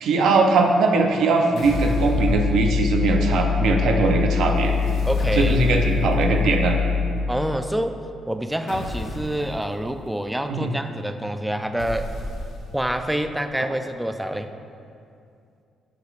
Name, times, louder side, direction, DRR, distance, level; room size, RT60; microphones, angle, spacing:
voice 1, 0.0-4.7 5.4-6.8 10.5-10.7, right 3 dB, 75° right, 3 dB, 0.5 m, -20 dB
sound 1, 1.6-3.2 4.6-6.1 8.7-9.5 11.8-12.9, left 1 dB, 70° left, 0.9 m, -33 dB
sound 2, 1.7-7.1, left 5 dB, 50° left, 0.5 m, -23 dB
voice 2, 5.0-5.6 7.3-8.0 8.3-12.1 12.7-14.5, right 1 dB, 5° right, 7 dB, 0.3 m, -27 dB
9.4 x 4.9 x 2.4 m, 2.5 s
cardioid pair, 90°, 0 cm